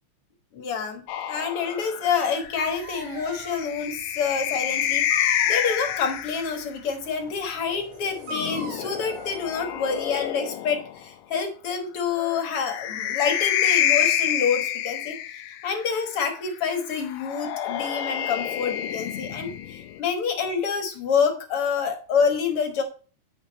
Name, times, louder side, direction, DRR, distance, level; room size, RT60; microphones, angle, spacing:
voice 1, 0.5-1.0 1.3-15.2 15.6-22.8, left 6 dB, 55° left, 5 dB, 2.0 m, -27 dB
sound 1, 1.1-6.6 8.0-11.0 12.3-15.8 17.1-20.0, left 10 dB, 75° left, 1.7 m, -28 dB
Dog, 2.4-10.3, right 2 dB, 75° right, 3.8 m, -42 dB
9.1 x 5.4 x 4.0 m, 0.38 s
omnidirectional pair, 3.5 m